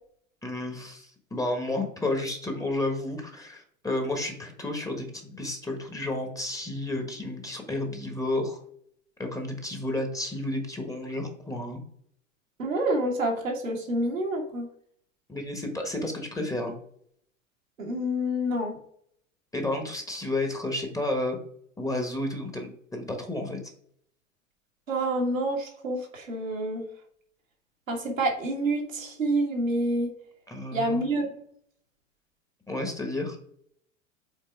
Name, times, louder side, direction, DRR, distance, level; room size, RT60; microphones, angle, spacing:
voice 1, 0.4-8.6 9.2-11.8 15.3-16.7 19.5-21.4 21.8-23.6 30.5-31.0 32.7-33.4, left 2 dB, 10° left, 3 dB, 1.4 m, -31 dB
voice 2, 12.6-14.7 17.8-18.8 24.9-26.8 27.9-30.1 30.7-31.3, right 1 dB, 85° right, -1 dB, 1.8 m, -28 dB
5.7 x 4.2 x 4.7 m, 0.65 s
figure-of-eight pair, 90°, 38 cm